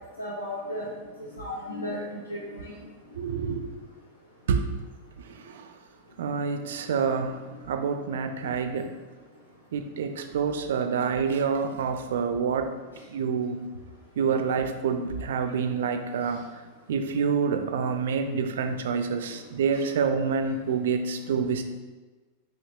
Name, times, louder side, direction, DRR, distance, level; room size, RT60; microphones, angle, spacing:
voice 1, 0.2-0.9 1.2-2.7, left 1 dB, 80° left, -4 dB, 0.5 m, -35 dB
voice 2, 3.1-3.6 4.5-4.7 5.3-5.7 6.2-7.3 7.7-8.9 9.7-12.7 13.1-13.6 14.2-16.4 16.9-21.6, right 6 dB, 60° right, 7 dB, 0.3 m, -27 dB
5.8 x 2.7 x 2.3 m, 1.3 s
figure-of-eight pair, 90°, 0 cm